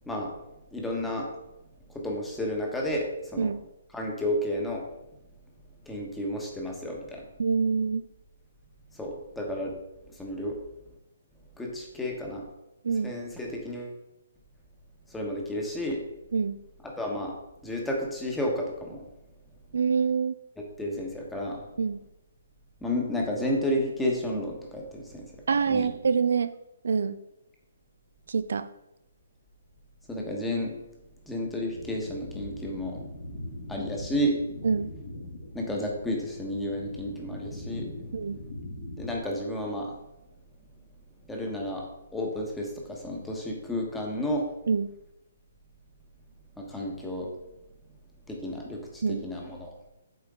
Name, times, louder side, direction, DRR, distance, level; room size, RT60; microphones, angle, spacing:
voice 1, 0.7-1.3 1.9-3.5 3.9-4.8 5.9-7.2 9.0-9.7 10.2-10.6 11.6-12.4 13.0-13.9 15.1-16.0 17.0-17.4 17.6-19.0 20.6-21.6 22.8-25.3 25.7-25.9 30.1-30.7 31.3-33.0 33.7-34.4 35.5-37.9 39.0-39.9 41.3-41.8 42.1-44.5 46.6-47.3 48.3-49.7, left 1 dB, 5° left, -1 dB, 1.2 m, -31 dB
voice 2, 7.4-8.0 12.8-13.1 16.3-16.6 19.7-20.3 21.8-22.0 25.5-26.5 26.8-27.2 28.3-28.7 34.6-34.9 38.1-38.4 44.7-44.9 49.0-49.2, right 5 dB, 75° right, 12 dB, 0.3 m, -25 dB
sound 1, 31.7-39.2, left 1 dB, 70° left, 2.4 m, -41 dB
7.6 x 4.4 x 3.7 m, 0.86 s
hypercardioid pair, 150°, 0 cm